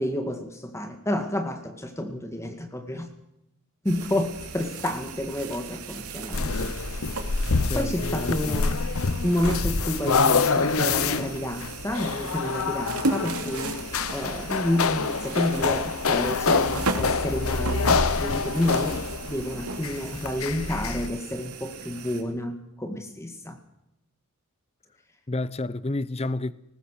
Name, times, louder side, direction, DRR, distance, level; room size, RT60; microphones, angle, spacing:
voice 1, 0.0-3.1 3.8-7.2 7.7-8.8 9.2-19.0 19.3-23.6, left 1 dB, 15° left, 1.9 m, -30 dB
sound 1, 3.9-22.2, right 3 dB, 80° right, 2.9 m, -36 dB
sound 2, 6.3-21.1, left 4 dB, 70° left, 0.9 m, -26 dB
voice 2, 7.7-8.5 25.3-26.5, left 2 dB, 30° left, 0.7 m, -30 dB
20.0 x 19.5 x 6.6 m
head